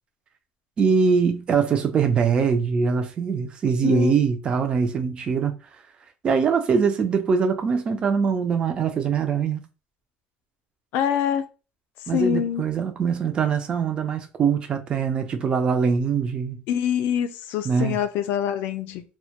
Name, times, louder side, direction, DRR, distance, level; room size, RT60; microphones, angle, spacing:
voice 1, 0.8-5.5 6.2-9.6 12.1-16.6 17.6-18.0, right 6 dB, 25° right, 0.3 m, -22 dB
voice 2, 3.8-4.2 10.9-11.5 12.1-12.6 16.7-19.0, left 9 dB, 65° left, 0.4 m, -25 dB
2.2 x 2.0 x 2.7 m
cardioid pair, 165°, 4 cm